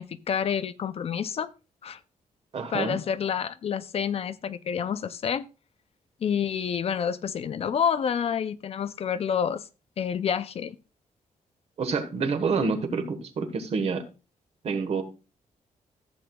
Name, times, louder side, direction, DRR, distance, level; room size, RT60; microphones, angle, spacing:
voice 1, 0.0-1.5 1.8-2.0 2.7-5.4 6.2-9.6 10.0-10.8, left 7 dB, 45° left, 0.5 m, -28 dB
voice 2, 2.5-3.0 11.8-14.0 14.6-15.0, right 4 dB, 50° right, 1.4 m, -27 dB
14.5 x 7.7 x 2.3 m
wide cardioid pair, 175°, 14 cm